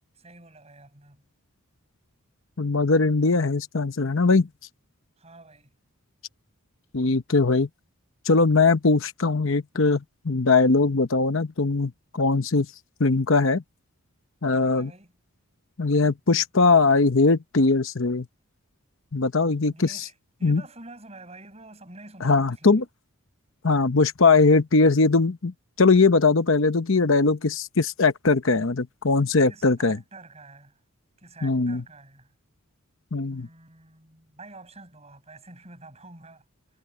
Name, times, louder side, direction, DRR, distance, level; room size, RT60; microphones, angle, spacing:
voice 1, 0.1-1.2 5.2-5.7 14.6-15.2 19.7-22.8 29.5-30.8 31.2-32.3 33.3-36.5, right 2 dB, 30° right, 7.5 m, -48 dB
voice 2, 2.6-4.5 6.9-7.7 8.3-12.7 13.0-13.6 14.4-14.9 15.8-18.3 19.1-20.0 20.4-20.6 22.2-22.8 23.6-25.5 25.8-30.0 31.4-31.8 33.1-33.5, left 3 dB, 60° left, 0.9 m, -20 dB
head